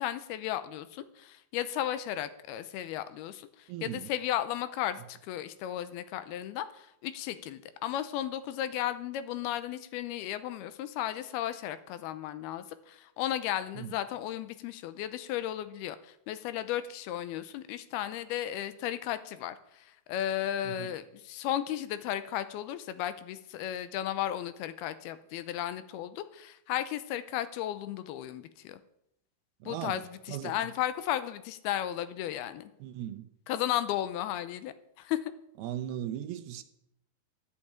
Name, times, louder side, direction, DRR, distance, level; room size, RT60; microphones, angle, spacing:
voice 1, 0.0-28.8 29.6-32.7 33.5-35.3, left 12 dB, 85° left, 2.7 m, -34 dB
voice 2, 3.7-4.1 13.8-14.0 20.7-20.9 29.6-30.0 30.3-30.5 32.8-33.3 35.6-36.6, right 11 dB, 85° right, 2.8 m, -38 dB
12.0 x 8.5 x 8.6 m
omnidirectional pair, 4.5 m